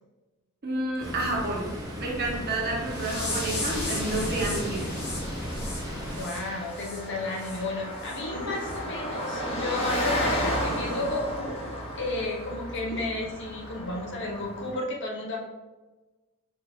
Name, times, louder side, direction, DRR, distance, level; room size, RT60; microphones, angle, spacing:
voice 1, 0.6-1.7 2.0-4.8 8.3-8.5 12.8-13.0, right 2 dB, 50° right, -2 dB, 0.8 m, -30 dB
Ocean, 1.0-6.2, equal, 20° right, 0.9 m, -34 dB
Car passing by, 1.5-14.7, equal, 25° left, 0.7 m, -34 dB
sound 1, 2.9-7.6 8.0-8.2 8.6-8.8 9.2-9.4 9.9-10.0, left 2 dB, 80° left, 1.4 m, -36 dB
voice 2, 6.2-11.6 12.0-15.4, left 2 dB, 55° left, -1 dB, 0.8 m, -32 dB
4.7 x 2.5 x 3.1 m, 1.2 s
head